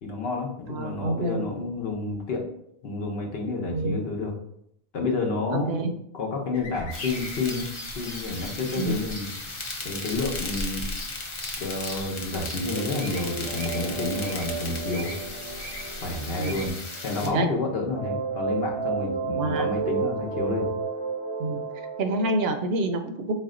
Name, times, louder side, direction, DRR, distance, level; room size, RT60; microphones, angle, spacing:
voice 1, 0.0-2.5 2.8-4.3 4.9-5.8 6.1-7.7 8.0-9.3 9.8-10.9 11.6-15.1 16.0-20.7, left 3 dB, 75° left, 1 dB, 1.0 m, -30 dB
voice 2, 0.7-1.4 3.7-4.0 5.5-5.9 8.8-9.0 16.4-16.6 17.2-17.5 19.4-19.7 21.4-21.6 22.0-23.3, right 2 dB, 75° right, 7 dB, 0.8 m, -27 dB
sound 1, 6.5-16.7, left 1 dB, 50° left, 1.0 m, -40 dB
sound 2, 6.9-17.3, left 2 dB, 35° left, 0.6 m, -37 dB
sound 3, 12.7-17.6 17.9-22.5, right 5 dB, 35° right, 0.6 m, -32 dB
4.2 x 2.1 x 3.7 m, 0.73 s
omnidirectional pair, 1.0 m